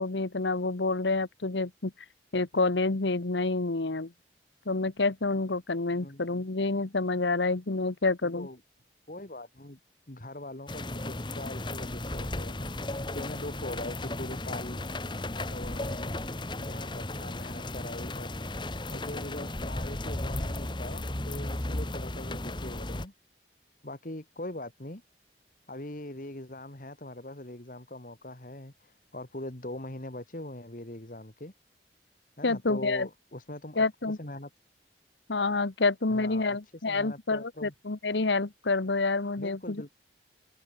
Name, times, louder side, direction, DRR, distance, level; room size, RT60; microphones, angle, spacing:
voice 1, 0.0-1.9 2.3-4.1 4.7-8.5 32.4-33.1 33.8-34.2 35.3-39.8, left 3 dB, 80° left, 1.2 m, -28 dB
voice 2, 6.0-6.4 8.3-8.6 9.1-9.8 10.1-14.9 15.4-16.2 16.6-23.1 23.8-25.0 25.7-31.5 32.4-33.8 34.2-34.5 36.1-37.7 39.4-39.9, left 1 dB, 50° left, 2.3 m, -42 dB
sound 1, 10.7-23.1, left 1 dB, 25° left, 1.6 m, -35 dB
head